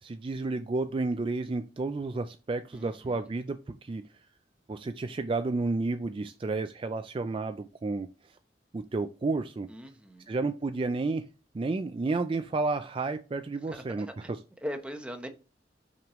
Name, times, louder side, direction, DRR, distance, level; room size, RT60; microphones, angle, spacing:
voice 1, 0.0-4.0 4.7-8.1 8.7-9.7 10.3-11.2 11.5-14.1, right 3 dB, 30° right, 0.3 m, -31 dB
voice 2, 2.7-3.3 9.7-10.3 13.7-14.3 14.6-15.3, equal, 5° right, 0.9 m, -40 dB
5.8 x 5.3 x 3.1 m
head